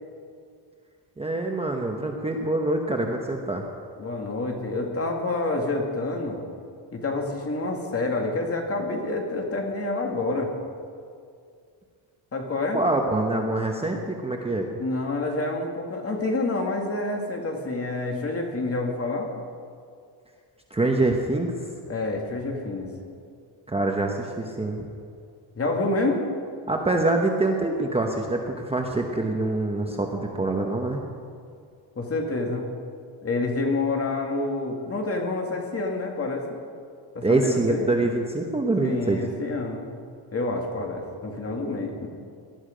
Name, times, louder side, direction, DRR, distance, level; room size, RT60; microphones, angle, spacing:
voice 1, 1.2-3.7 12.7-14.7 20.7-21.5 23.7-24.9 26.7-31.0 37.2-39.2, right 2 dB, 10° right, 2 dB, 1.0 m, -25 dB
voice 2, 4.0-6.4 6.9-10.5 12.3-12.8 14.8-19.3 21.9-22.9 25.6-26.2 32.0-32.7 33.2-36.5 37.1-37.9 38.8-39.9 40.3-42.1, left 2 dB, 30° left, 2 dB, 2.2 m, -28 dB
18.5 x 12.0 x 5.2 m, 2.3 s
cardioid pair, 140°, 47 cm